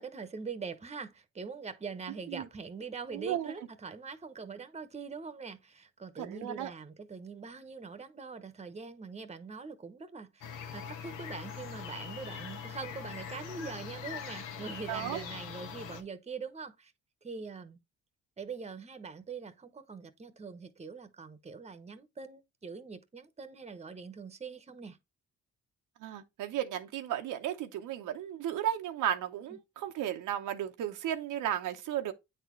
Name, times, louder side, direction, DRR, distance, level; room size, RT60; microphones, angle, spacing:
voice 1, 0.0-10.5 10.7-16.9 17.2-17.8 18.4-25.0 29.5-29.6, right 5 dB, 20° right, 1.0 m, -43 dB
voice 2, 3.1-3.5 6.2-6.7 14.9-15.2 26.0-32.1, right 11 dB, 85° right, 0.9 m, -34 dB
sound 1, 10.4-16.0, left 7 dB, 85° left, 1.4 m, -42 dB
8.9 x 4.1 x 3.1 m
cardioid pair, 90°, 30 cm